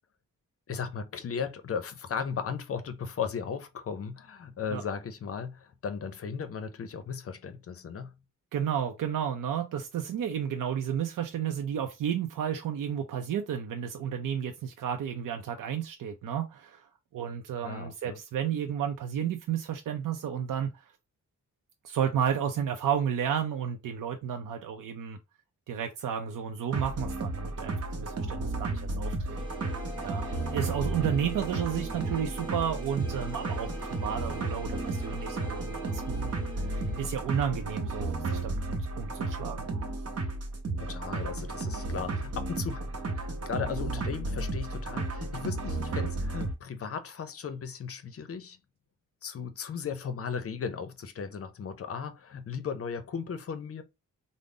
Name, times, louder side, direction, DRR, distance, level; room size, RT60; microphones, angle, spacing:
voice 1, 0.7-8.1 17.6-18.2 36.8-37.0 40.8-48.6 49.2-53.8, left 6 dB, 45° left, 0.5 m, -36 dB
voice 2, 8.5-20.8 21.8-25.2 25.7-29.4 30.0-36.2 36.5-39.7, right 8 dB, 75° right, 0.5 m, -32 dB
sound 1, 26.7-46.5, right 2 dB, 50° right, 0.8 m, -33 dB
sound 2, 29.4-37.0, right 2 dB, 15° right, 1.0 m, -42 dB
3.7 x 2.0 x 3.7 m
wide cardioid pair, 150°, 32 cm